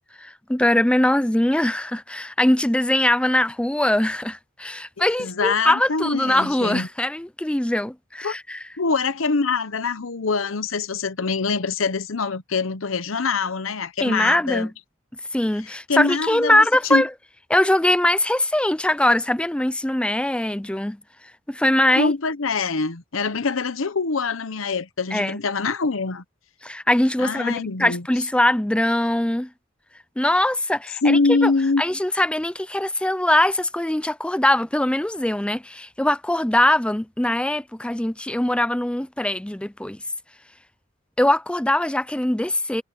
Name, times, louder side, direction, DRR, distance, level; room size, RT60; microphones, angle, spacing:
voice 1, 0.2-8.6 14.0-14.7 15.3-17.1 17.5-21.0 21.5-22.1 25.1-25.4 26.6-29.5 30.2-31.5 31.8-40.0 41.2-42.8, left 1 dB, 5° left, 0.5 m, -22 dB
voice 2, 5.0-6.9 8.2-8.3 8.8-14.7 15.9-17.0 22.0-26.2 27.2-28.0 31.0-31.8, left 4 dB, 90° left, 0.9 m, -24 dB
head